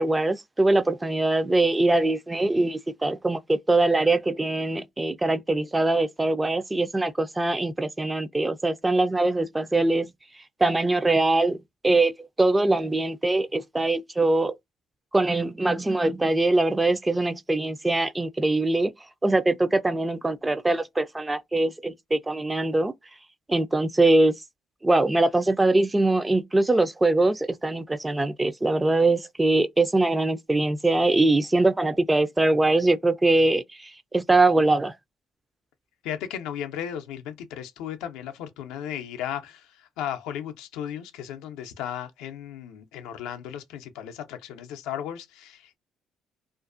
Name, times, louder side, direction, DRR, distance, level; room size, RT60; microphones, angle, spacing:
voice 1, 0.0-10.1 10.6-14.6 15.1-18.9 19.2-22.9 23.5-24.4 24.8-34.9, right 2 dB, 15° right, 0.3 m, -22 dB
voice 2, 36.0-45.8, left 10 dB, 85° left, 0.4 m, -35 dB
2.4 x 2.3 x 2.4 m
supercardioid pair, 70°, 0 cm